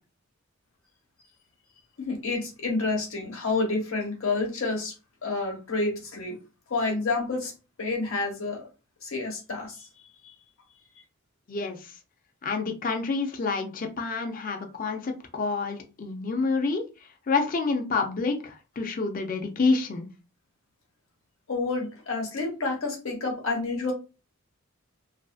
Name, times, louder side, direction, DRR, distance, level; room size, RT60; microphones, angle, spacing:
voice 1, 2.0-4.9 5.2-6.3 6.7-7.5 7.8-8.7 9.0-9.9 10.2-10.3 10.9-11.0 21.5-23.9, left 3 dB, 70° left, 0 dB, 1.1 m, -29 dB
voice 2, 11.5-11.9 12.4-16.8 17.3-20.1, left 4 dB, 40° left, 4 dB, 0.4 m, -28 dB
2.8 x 2.5 x 2.4 m, 0.31 s
head